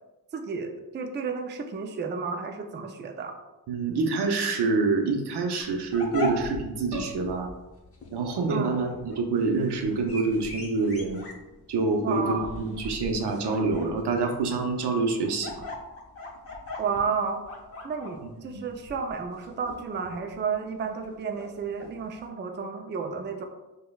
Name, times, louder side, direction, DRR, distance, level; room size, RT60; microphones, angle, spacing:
voice 1, 0.3-3.4 8.5-8.8 12.0-12.5 16.8-17.4 17.8-23.4, right 5 dB, 30° right, 4 dB, 0.4 m, -32 dB
voice 2, 3.7-7.5 8.1-11.2 11.7-15.6 18.5-18.6, right 3 dB, 90° right, 4 dB, 0.6 m, -26 dB
sound 1, 5.6-22.2, left 2 dB, 35° left, 0.8 m, -40 dB
5.1 x 2.2 x 2.3 m, 1.0 s
cardioid pair, 75°, 39 cm